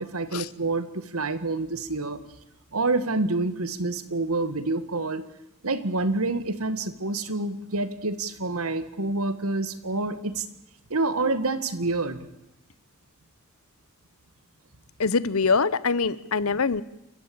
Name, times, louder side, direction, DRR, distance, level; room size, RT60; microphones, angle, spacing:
voice 1, 0.0-2.2 2.7-5.2 5.6-10.5 10.9-12.2, right 2 dB, 80° right, 13 dB, 1.8 m, -27 dB
voice 2, 15.0-16.8, left 4 dB, 80° left, 19 dB, 1.0 m, -23 dB
28.5 x 15.0 x 8.8 m, 0.83 s
head